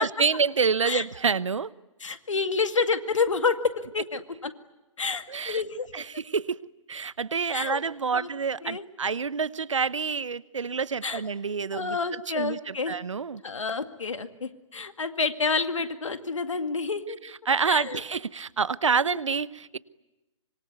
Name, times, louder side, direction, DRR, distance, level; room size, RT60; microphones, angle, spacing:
voice 1, 0.0-1.7 5.3-5.6 5.9-6.6 6.9-12.0 12.3-13.4 17.5-19.8, right 5 dB, 70° right, 19 dB, 0.9 m, -27 dB
voice 2, 2.0-4.5 5.0-6.0 7.5-7.8 8.1-8.3 8.6-8.8 11.0-11.2 11.7-13.0 13.4-17.2 17.7-18.0 19.0-19.2, left 4 dB, 70° left, 8 dB, 2.2 m, -29 dB
25.5 x 23.5 x 9.5 m, 1.0 s
figure-of-eight pair, 135°, 17 cm